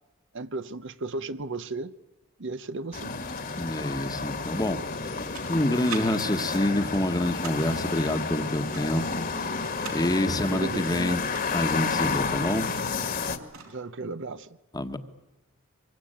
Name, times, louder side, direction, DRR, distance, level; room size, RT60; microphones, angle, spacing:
voice 1, 0.3-1.9 2.4-3.1 10.4-11.2 13.6-14.6, right 3 dB, 60° right, 0.9 m, -35 dB
sound 1, 2.9-13.4, left 4 dB, 45° left, 1.9 m, -31 dB
voice 2, 3.6-5.2 5.5-9.5 9.9-11.2 11.5-12.7 14.7-15.0, left 1 dB, 20° left, 1.4 m, -27 dB
sound 2, 4.9-6.0 6.4-7.7 8.5-10.0 11.1-12.4 12.7-12.8 13.1-13.8, right 7 dB, 80° right, 4.7 m, -42 dB
25.0 x 23.5 x 9.0 m
head